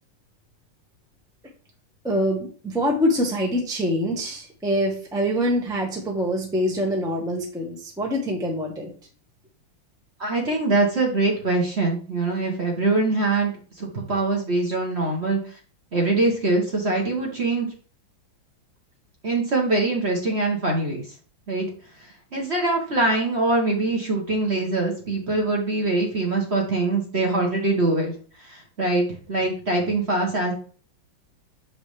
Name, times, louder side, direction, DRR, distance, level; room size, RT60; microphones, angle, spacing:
voice 1, 2.0-8.9, equal, ahead, 0 dB, 1.0 m, -25 dB
voice 2, 10.2-15.4 15.9-17.7 19.2-21.0 21.5-21.6 22.0-28.1 28.4-30.5, right 2 dB, 35° right, 0 dB, 1.6 m, -23 dB
7.1 x 5.4 x 3.3 m, 0.40 s
omnidirectional pair, 2.1 m